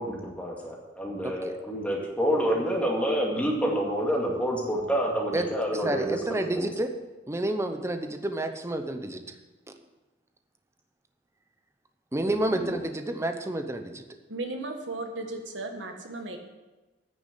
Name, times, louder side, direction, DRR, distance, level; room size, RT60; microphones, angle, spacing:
voice 1, 0.0-6.7 12.3-12.8, equal, 10° left, -2 dB, 2.2 m, -28 dB
voice 2, 1.2-1.6 5.3-5.5 5.8-6.9 7.3-9.2 12.1-14.0, right 1 dB, 15° right, 7 dB, 0.8 m, -29 dB
voice 3, 14.3-16.4, right 2 dB, 85° right, 4 dB, 1.6 m, -35 dB
9.7 x 6.8 x 8.1 m, 1.1 s
head